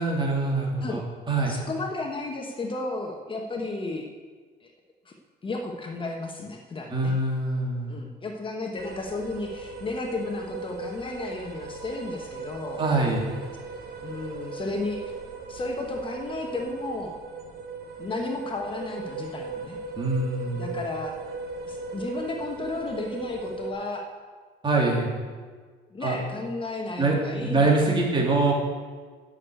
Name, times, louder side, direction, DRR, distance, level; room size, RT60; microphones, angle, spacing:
voice 1, 0.0-1.5 6.9-7.9 12.8-13.2 20.0-20.8 24.6-25.1 26.0-26.2 27.0-28.5, right 3 dB, 30° right, -2 dB, 2.9 m, -24 dB
voice 2, 1.5-4.1 4.6-4.7 5.0-5.1 5.4-7.2 7.9-12.8 14.0-15.2 15.5-17.2 18.0-19.8 20.5-21.1 21.7-24.1 25.9-28.1 28.5-28.6, left 2 dB, 30° left, 2 dB, 1.2 m, -33 dB
sound 1, 8.8-23.7, right 4 dB, 65° right, 1.7 m, -38 dB
9.7 x 6.5 x 8.1 m, 1.5 s
cardioid pair, 110°, 17 cm